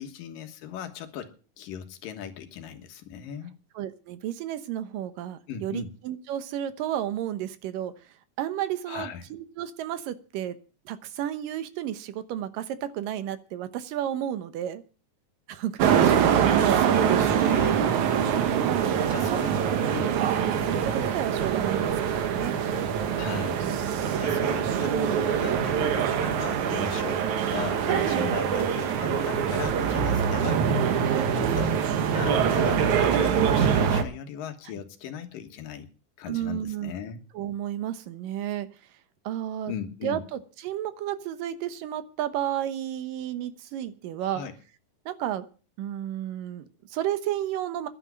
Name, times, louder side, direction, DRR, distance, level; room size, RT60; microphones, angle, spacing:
voice 1, 0.0-3.6 5.5-5.9 8.9-9.2 15.9-16.1 16.4-17.9 19.1-19.6 19.9-20.2 23.2-23.7 24.2-30.6 31.4-31.8 32.1-35.9 36.2-37.2 39.7-40.2 44.2-44.5, left 8 dB, 80° left, 7 dB, 3.1 m, -38 dB
voice 2, 3.8-7.9 8.4-10.6 10.9-14.8 15.5-16.2 18.3-19.3 19.7-19.9 20.5-22.6 36.3-36.9 37.3-38.7 39.2-39.7 40.0-44.4 45.1-45.5 45.8-47.9, right 11 dB, 80° right, 12 dB, 2.7 m, -32 dB
sound 1, 15.8-34.0, right 8 dB, 65° right, 2.5 m, -24 dB
11.0 x 8.6 x 9.4 m, 0.37 s
omnidirectional pair, 3.9 m